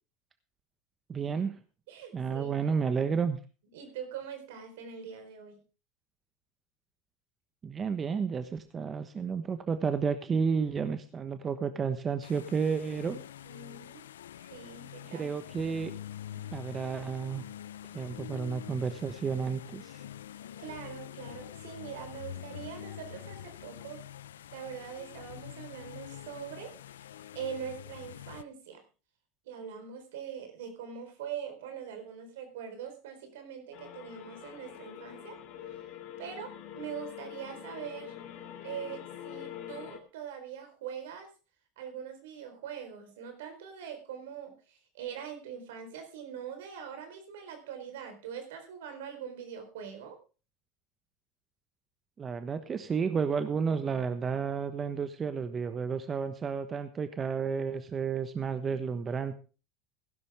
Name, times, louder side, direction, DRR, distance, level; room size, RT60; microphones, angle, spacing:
voice 1, 1.1-1.6 2.1-3.4 7.6-13.2 15.1-15.9 16.5-17.4 17.9-20.0 52.2-59.3, right 6 dB, 30° right, 10 dB, 1.2 m, -31 dB
voice 2, 1.9-2.7 3.7-5.6 13.1-13.2 13.4-14.1 14.4-15.3 15.7-15.8 16.3-16.6 20.6-24.1 24.5-28.8 29.5-35.4 35.7-35.8 36.2-38.1 38.6-41.3 41.8-50.2, right 8 dB, 80° right, 6 dB, 4.3 m, -43 dB
sound 1, 12.2-28.4, left 11 dB, 90° left, 0.5 m, -45 dB
sound 2, 33.7-40.0, left 10 dB, 60° left, 2.6 m, -45 dB
16.0 x 12.0 x 3.6 m, 0.35 s
hypercardioid pair, 90°, 0 cm